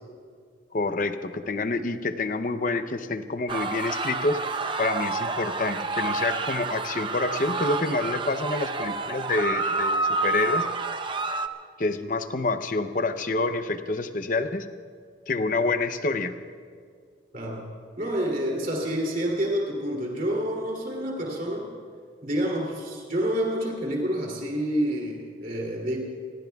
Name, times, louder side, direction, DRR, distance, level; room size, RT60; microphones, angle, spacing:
voice 1, 0.7-4.4 4.8-10.7 11.8-14.7 15.3-16.3, left 3 dB, 45° left, 9 dB, 0.7 m, -27 dB
sound 1, 3.5-11.5, right 3 dB, 25° right, 0.6 m, -29 dB
voice 2, 17.3-17.7 18.0-21.7 22.2-26.0, equal, 45° right, -2 dB, 2.8 m, -28 dB
27.0 x 21.5 x 2.4 m, 2.1 s
head